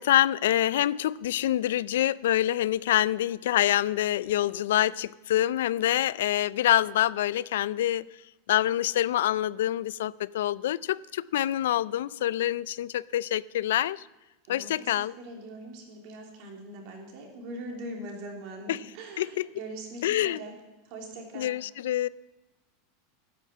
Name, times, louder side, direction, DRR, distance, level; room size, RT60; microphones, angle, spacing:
voice 1, 0.0-8.1 8.5-14.1 14.5-15.1 18.7-18.8 19.2-19.3 20.0-20.4 21.3-22.1, left 12 dB, 85° left, 0.4 m, -26 dB
voice 2, 14.4-20.6 20.8-21.5, right 1 dB, 45° right, 3.2 m, -42 dB
11.0 x 10.5 x 7.5 m
supercardioid pair, 170°, 0 cm